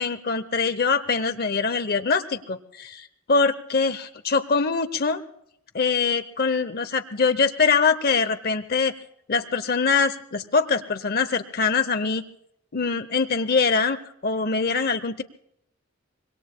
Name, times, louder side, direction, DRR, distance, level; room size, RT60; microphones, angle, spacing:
voice 1, 0.0-5.2 5.7-8.9 9.3-12.2 12.7-14.0 14.2-15.2, left 4 dB, 50° left, 10 dB, 0.7 m, -23 dB
25.0 x 22.5 x 2.2 m, 0.75 s
head